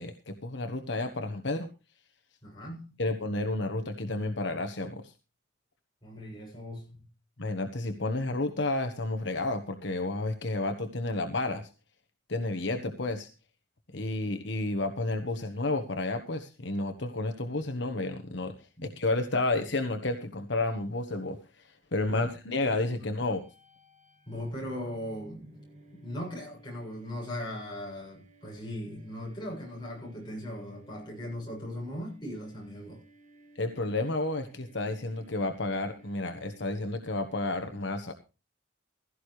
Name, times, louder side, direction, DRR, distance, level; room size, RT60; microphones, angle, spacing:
voice 1, 0.0-1.7 3.0-5.1 7.4-11.7 12.3-13.3 13.9-23.4 33.5-38.1, left 2 dB, 60° left, 1.3 m, -31 dB
voice 2, 2.4-3.0 6.0-7.1 18.8-18.9 22.1-22.3 23.0-23.1 24.3-25.5 25.9-33.0, left 1 dB, 20° left, 7.4 m, -39 dB
sound 1, 23.0-37.1, right 2 dB, 35° right, 2.1 m, -58 dB
16.5 x 13.5 x 3.2 m
head